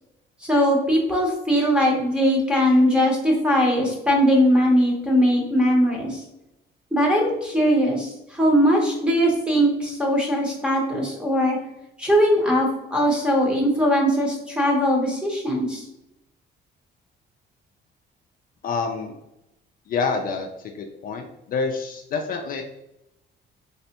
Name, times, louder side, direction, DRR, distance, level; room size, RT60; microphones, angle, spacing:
voice 1, 0.4-6.2 6.9-11.6 12.0-15.8, equal, 5° right, -1 dB, 0.8 m, -20 dB
voice 2, 18.6-19.1 19.9-20.5 20.7-22.6, left 4 dB, 50° left, 3 dB, 0.4 m, -27 dB
3.3 x 3.2 x 2.8 m, 0.88 s
cardioid pair, 165°, 19 cm